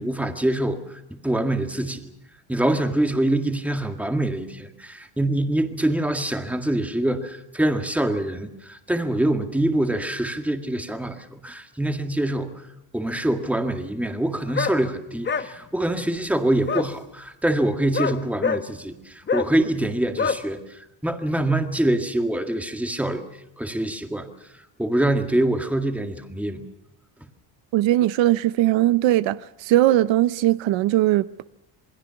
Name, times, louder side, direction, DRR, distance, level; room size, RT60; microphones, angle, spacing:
voice 1, 0.0-2.1 2.5-12.7 12.9-23.2 23.6-24.3 24.8-26.7, right 1 dB, 5° right, 1.9 m, -25 dB
sound 1, 14.5-14.8 15.2-15.5 16.7-16.9 17.9-18.6 19.3-19.5 20.2-20.4, left 5 dB, 25° left, 1.0 m, -24 dB
voice 2, 27.7-31.5, right 14 dB, 70° right, 0.8 m, -20 dB
28.0 x 22.0 x 5.9 m
cardioid pair, 145°, 47 cm